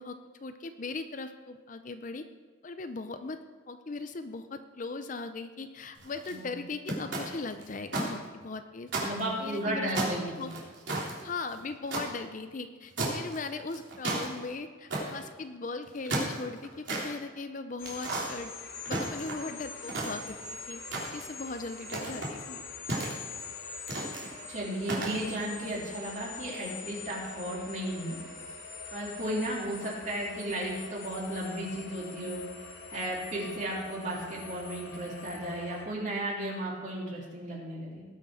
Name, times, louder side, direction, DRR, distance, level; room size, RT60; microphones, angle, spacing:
voice 1, 0.0-2.2 2.6-3.4 3.7-9.1 9.4-10.5 10.9-18.5 18.8-22.6, left 3 dB, 40° left, 9 dB, 0.5 m, -39 dB
sound 1, 6.0-6.3 6.9-8.1 8.4-8.5 8.9-9.6 10.0-12.1 13.0-13.4 13.7-14.3 14.9-15.2 15.9-17.1 17.8-18.3 18.9-19.5 19.9-20.5 20.9-21.4 21.9-22.3 22.9-23.4 23.9-24.3 24.8-25.2, right 2 dB, 65° right, 3.3 m, -33 dB
voice 2, 8.9-10.5 24.5-28.2 28.9-32.4 32.9-38.0, right 1 dB, 40° right, -4 dB, 3.3 m, -34 dB
sound 2, 17.8-35.9, left 4 dB, 80° left, 2.3 m, -44 dB
18.5 x 6.4 x 5.0 m, 1.5 s
head